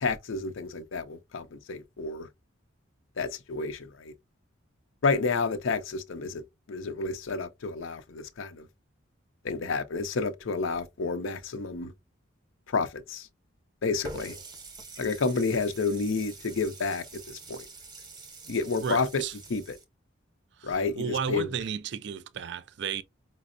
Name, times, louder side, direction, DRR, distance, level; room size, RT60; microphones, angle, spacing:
voice 1, 0.0-2.3 3.2-4.1 5.0-6.4 6.7-8.6 9.4-11.9 12.7-13.3 13.8-14.4 15.0-17.7 18.5-19.2 19.5-19.8 20.6-21.5, left 4 dB, 75° left, 0.6 m, -30 dB
Water tap faucet, 14.0-19.8, right 2 dB, 20° right, 0.7 m, -45 dB
voice 2, 18.8-19.3 20.6-23.0, right 6 dB, 55° right, 0.3 m, -33 dB
5.0 x 2.0 x 2.4 m
head